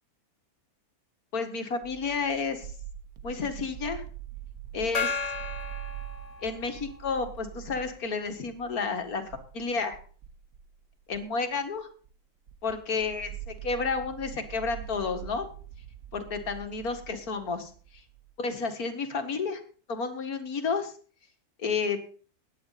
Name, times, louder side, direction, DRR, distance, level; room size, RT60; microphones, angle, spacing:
voice 1, 1.3-2.7 3.2-4.0 4.7-5.3 6.4-10.0 11.1-11.9 12.6-15.5 16.1-18.0 18.4-19.6 19.9-20.9 21.6-22.0, left 4 dB, 70° left, 7 dB, 2.3 m, -31 dB
sound 1, 1.8-11.4 11.8-12.2 12.5-18.3, right 12 dB, 75° right, 1.6 m, -44 dB
Gong, 4.9-7.0, left 4 dB, 30° left, 0.9 m, -34 dB
17.0 x 10.5 x 4.2 m, 0.42 s
omnidirectional pair, 1.6 m